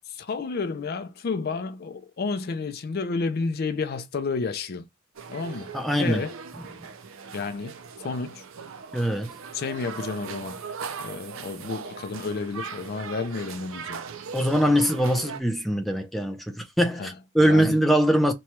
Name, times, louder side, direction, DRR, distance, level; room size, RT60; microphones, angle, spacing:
voice 1, 0.1-4.9 5.3-5.7 6.0-6.4 7.3-8.4 9.5-10.6 11.0-14.0 17.0-17.8, left 4 dB, 50° left, 0.4 m, -31 dB
sound 1, 5.1-15.4, right 5 dB, 85° right, 0.5 m, -39 dB
voice 2, 5.7-6.2 8.9-9.3 14.3-18.3, equal, ahead, 0.5 m, -22 dB
3.0 x 2.3 x 4.2 m
head